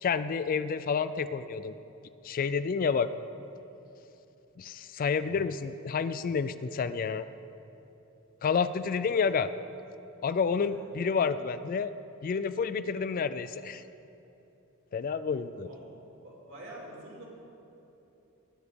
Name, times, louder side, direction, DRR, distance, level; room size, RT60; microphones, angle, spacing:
voice 1, 0.0-1.7 2.2-3.1 4.6-7.3 8.4-9.5 10.2-11.9 12.2-13.8 14.9-15.7, left 5 dB, 40° left, 13 dB, 0.3 m, -29 dB
voice 2, 15.6-16.0 16.2-17.3, right 1 dB, 60° right, -2 dB, 2.8 m, -47 dB
19.5 x 7.0 x 5.1 m, 3.0 s
head